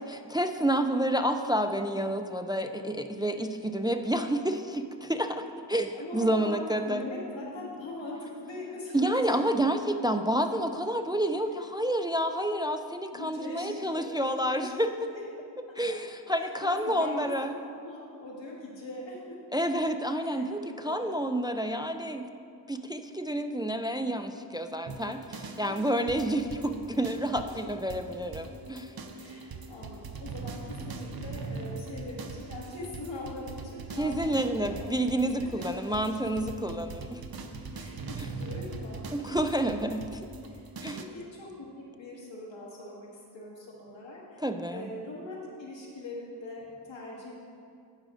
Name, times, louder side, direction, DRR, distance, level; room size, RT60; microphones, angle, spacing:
voice 1, 0.3-7.1 8.9-14.9 15.8-17.5 19.5-22.3 22.7-28.9 34.0-37.2 38.2-38.3 39.1-40.2 40.8-41.0 44.4-44.9, right 1 dB, 10° right, 7 dB, 0.4 m, -29 dB
voice 2, 5.9-6.6 6.9-9.6 13.1-14.7 15.0-15.3 15.7-16.0 16.4-17.5 17.8-19.4 20.2-21.2 25.5-25.8 29.1-35.0 35.4-35.8 37.7-39.4 40.4-40.6 40.9-43.1 43.3-47.3, left 2 dB, 85° left, -4 dB, 1.9 m, -42 dB
sound 1, 24.9-41.0, right 4 dB, 55° right, 0.8 m, -41 dB
18.0 x 6.0 x 2.5 m, 2.4 s
cardioid pair, 50°, 44 cm